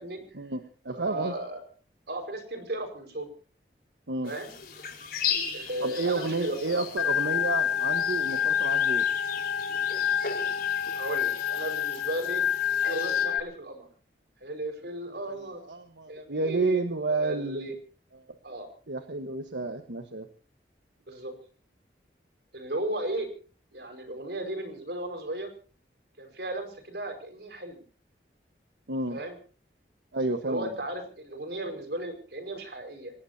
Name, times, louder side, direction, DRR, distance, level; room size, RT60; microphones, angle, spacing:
voice 1, 0.3-1.3 4.1-4.3 5.8-9.0 15.6-17.7 18.1-18.2 18.9-20.3 28.9-29.2 30.1-30.7, right 3 dB, 90° right, 7 dB, 1.3 m, -30 dB
voice 2, 0.9-1.6 2.1-3.3 4.2-4.5 5.5-6.8 10.9-12.4 12.9-13.9 14.4-15.6 16.1-17.7 18.4-18.7 21.1-21.3 22.5-23.3 23.7-25.5 26.2-27.8 29.1-29.3 30.5-33.1, right 1 dB, 65° right, 6 dB, 5.3 m, -35 dB
sound 1, 4.3-13.2, left 7 dB, 55° left, 4.6 m, -38 dB
Organ, 7.0-13.4, left 8 dB, 80° left, 1.7 m, -27 dB
27.0 x 18.0 x 2.8 m, 0.39 s
head